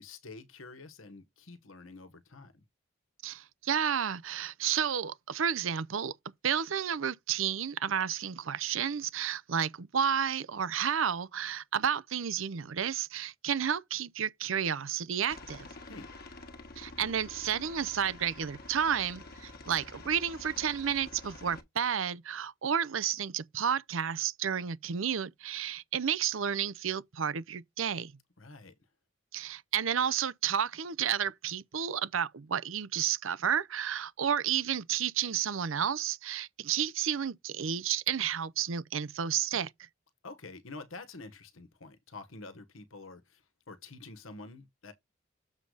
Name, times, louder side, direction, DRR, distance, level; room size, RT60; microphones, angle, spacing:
voice 1, 0.0-2.6 15.9-16.1 28.4-28.7 40.2-44.9, left 3 dB, 90° left, 1.4 m, -48 dB
voice 2, 3.2-6.1 6.4-15.7 16.8-28.1 29.3-39.7, right 8 dB, 75° right, 0.6 m, -31 dB
Aircraft, 15.3-21.6, left 2 dB, 50° left, 1.4 m, -48 dB
7.4 x 4.8 x 4.0 m
head